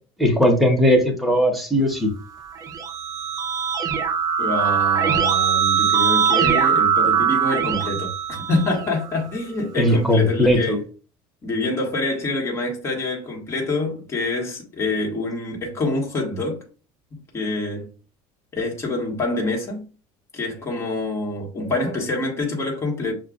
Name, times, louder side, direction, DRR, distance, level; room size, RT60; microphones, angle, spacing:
voice 1, 0.2-2.1 9.8-10.8, left 1 dB, ahead, 0.9 m, -18 dB
Keyboard (musical), 2.5-9.1, right 7 dB, 30° right, 0.6 m, -21 dB
voice 2, 4.4-8.1 8.5-10.8 11.4-16.6 17.1-17.9 18.5-19.8 20.3-23.1, left 2 dB, 25° left, 1.4 m, -26 dB
6.4 x 2.4 x 2.4 m
cardioid pair, 145°, 11 cm